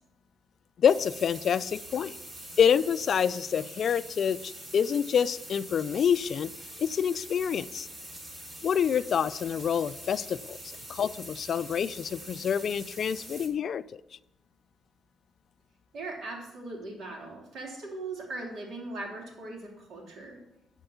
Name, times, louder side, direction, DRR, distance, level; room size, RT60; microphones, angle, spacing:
voice 1, 0.8-2.2 2.6-6.5 6.8-7.9 8.6-10.6 10.9-13.8, left 8 dB, 55° left, 16 dB, 0.3 m, -27 dB
sound 1, 0.9-13.5, right 1 dB, 25° right, 2.3 m, -44 dB
voice 2, 15.9-20.4, right 2 dB, 65° right, 0 dB, 3.2 m, -39 dB
11.5 x 4.5 x 7.0 m, 0.87 s
cardioid pair, 90°, 0 cm